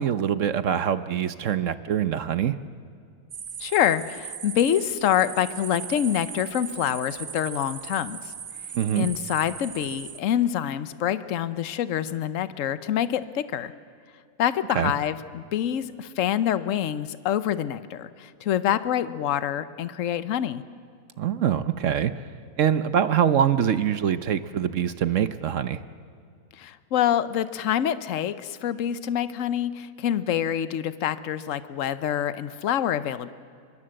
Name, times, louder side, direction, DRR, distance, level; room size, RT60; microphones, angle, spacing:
voice 1, 0.0-2.6 8.7-9.1 14.7-14.9 21.2-22.1 22.6-25.8, right 9 dB, 60° right, 13 dB, 1.1 m, -24 dB
sound 1, 3.3-10.2, right 7 dB, 45° right, 0.7 m, -38 dB
voice 2, 3.6-8.3 9.0-13.7 14.4-20.6 26.5-33.3, left 10 dB, 60° left, 13 dB, 1.1 m, -26 dB
24.5 x 23.0 x 7.7 m, 2.4 s
omnidirectional pair, 1.6 m